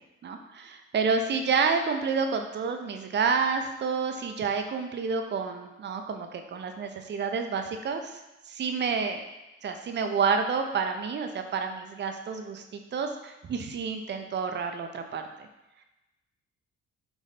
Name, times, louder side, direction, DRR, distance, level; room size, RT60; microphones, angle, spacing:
voice 1, 0.2-8.1 8.5-9.3 9.6-15.5, right 5 dB, 35° right, 5 dB, 0.5 m, -29 dB
3.4 x 2.6 x 4.0 m, 1.0 s
cardioid pair, 90°, 30 cm